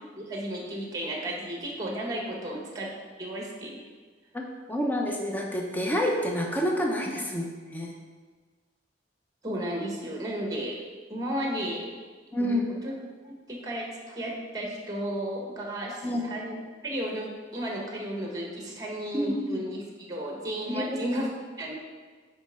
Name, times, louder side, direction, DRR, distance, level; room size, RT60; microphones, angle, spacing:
voice 1, 0.2-2.9 3.2-3.8 7.0-7.2 9.4-10.8 11.1-11.9 12.4-12.9 13.2-21.3 21.6-21.7, right 1 dB, 20° right, -1 dB, 1.2 m, -34 dB
voice 2, 4.3-7.4 7.7-7.9 12.3-12.8 16.0-16.3 19.1-19.6 20.7-21.0, equal, 10° left, 0 dB, 0.6 m, -28 dB
9.3 x 4.3 x 3.6 m, 1.5 s
head